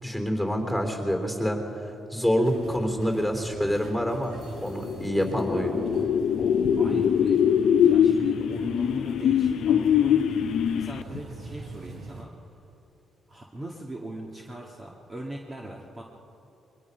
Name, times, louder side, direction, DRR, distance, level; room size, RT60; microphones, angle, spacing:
voice 1, 0.0-1.6 2.1-5.8, equal, ahead, 4 dB, 3.5 m, -27 dB
sound 1, 2.4-12.2, right 2 dB, 70° right, 3.4 m, -42 dB
sound 2, 4.7-11.2, left 8 dB, 70° left, 0.6 m, -23 dB
voice 2, 5.5-10.3 10.8-12.3 13.3-16.0, right 1 dB, 25° right, -1 dB, 1.7 m, -40 dB
22.0 x 21.0 x 5.6 m, 2.9 s
cardioid pair, 90°, 0 cm